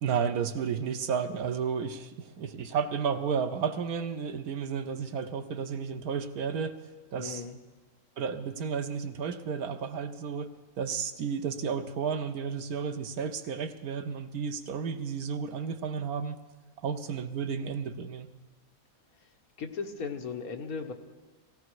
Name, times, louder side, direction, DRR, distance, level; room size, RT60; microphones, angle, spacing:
voice 1, 0.0-6.8 7.1-7.5 8.2-10.5 10.8-16.4 16.8-18.3, right 6 dB, 70° right, 10 dB, 1.2 m, -32 dB
voice 2, 7.2-7.6 19.6-20.9, left 5 dB, 65° left, 4 dB, 1.6 m, -36 dB
18.0 x 17.0 x 4.7 m, 1.3 s
omnidirectional pair, 1.7 m